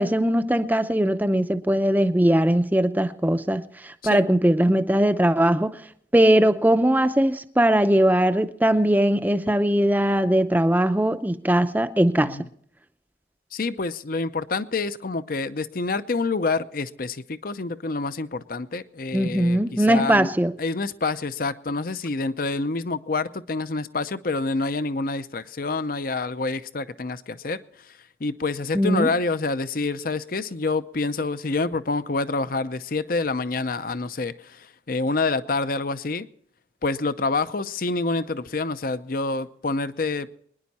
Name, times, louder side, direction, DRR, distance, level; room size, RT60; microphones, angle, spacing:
voice 1, 0.0-5.8 6.1-12.4 19.1-20.5 28.7-29.1, right 1 dB, 10° right, 0.6 m, -20 dB
voice 2, 13.5-20.3 20.6-27.6 28.2-36.3 36.8-40.4, left 3 dB, 50° left, 0.6 m, -27 dB
25.0 x 10.5 x 4.2 m
head